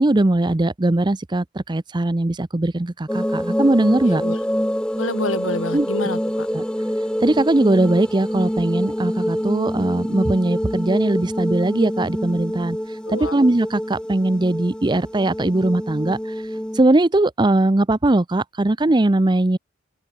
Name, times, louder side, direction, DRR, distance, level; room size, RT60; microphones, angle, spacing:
voice 1, 0.0-4.2 5.7-5.9 6.5-6.6 7.2-16.3 16.7-19.6, right 2 dB, 20° right, 0.6 m, -20 dB
sound 1, 3.1-16.8, equal, 5° left, 2.4 m, -26 dB
voice 2, 4.0-4.4 5.0-6.5 13.1-13.3, left 2 dB, 75° left, 4.3 m, -28 dB
open air
head